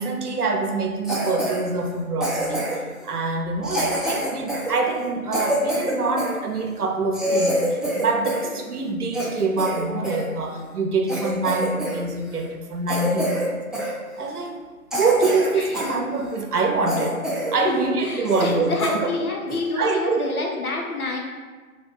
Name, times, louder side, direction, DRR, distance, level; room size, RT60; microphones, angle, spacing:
voice 1, 0.0-2.6 3.0-13.5 14.2-14.6 14.9-17.2 17.5-19.1 19.8-20.3, right 3 dB, 85° right, 4 dB, 0.8 m, -25 dB
Cough, 1.0-1.6 2.2-2.9 3.6-6.4 6.8-6.9 7.1-8.5 8.8-10.2 10.7-10.8 11.1-12.0 12.3-12.5 12.9-13.5 13.7-13.9 14.4-14.5 14.9-16.0 16.3-16.4 16.9-17.6 17.9-18.0 18.3-18.5 18.8-19.0 19.5-19.7, equal, ahead, 0.3 m, -26 dB
voice 2, 18.0-21.2, left 2 dB, 75° left, 0 dB, 0.9 m, -27 dB
3.4 x 2.4 x 3.8 m, 1.4 s
figure-of-eight pair, 165°, 44 cm